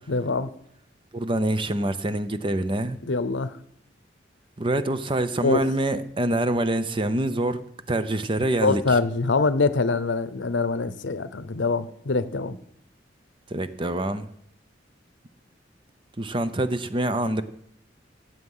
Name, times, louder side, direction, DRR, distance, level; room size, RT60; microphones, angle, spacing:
voice 1, 0.1-0.5 3.0-3.5 5.4-5.7 8.6-12.6, left 3 dB, 80° left, 15 dB, 0.7 m, -24 dB
voice 2, 1.1-3.0 4.6-9.0 13.5-14.3 16.2-17.4, right 1 dB, 25° right, 11 dB, 0.7 m, -26 dB
16.0 x 7.9 x 5.6 m, 0.76 s
head